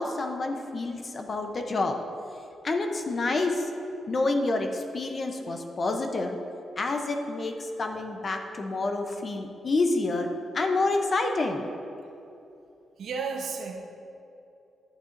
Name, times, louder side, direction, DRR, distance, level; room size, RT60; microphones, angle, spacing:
voice 1, 0.0-2.0 2.6-3.7 4.1-6.4 6.8-10.3 10.5-11.7, left 2 dB, 30° left, 4 dB, 0.6 m, -28 dB
voice 2, 13.0-13.8, right 5 dB, 65° right, 2 dB, 0.8 m, -32 dB
11.0 x 8.5 x 2.6 m, 2.7 s
wide cardioid pair, 165°, 0 cm